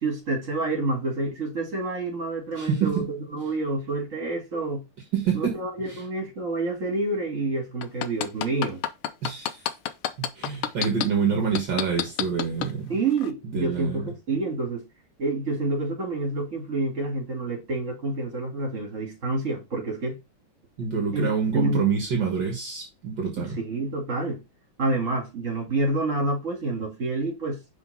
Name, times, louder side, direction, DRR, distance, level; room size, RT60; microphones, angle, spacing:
voice 1, 0.0-4.8 5.3-8.8 12.9-14.8 15.2-20.2 21.1-21.8 23.4-24.4 24.8-27.6, right 2 dB, 40° right, 2.6 m, -28 dB
voice 2, 2.6-3.0 5.1-5.6 5.9-6.0 9.2-9.6 10.2-12.9 13.5-14.1 20.8-23.6, right 6 dB, 60° right, 2.0 m, -26 dB
sound 1, 7.8-11.1 11.6-12.7 13.2-13.3, left 11 dB, 85° left, 1.5 m, -27 dB
5.9 x 4.6 x 4.2 m
omnidirectional pair, 2.3 m